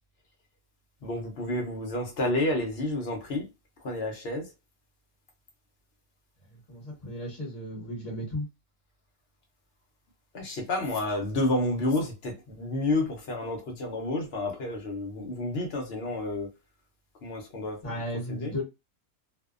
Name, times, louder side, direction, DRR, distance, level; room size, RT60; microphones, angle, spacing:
voice 1, 1.0-3.5 3.8-4.5 10.3-16.5 17.2-18.0 18.3-18.5, left 2 dB, 60° left, 0.9 m, -30 dB
voice 2, 6.7-8.4 17.8-18.6, equal, 35° left, 1.1 m, -34 dB
2.6 x 2.1 x 2.4 m
omnidirectional pair, 1.3 m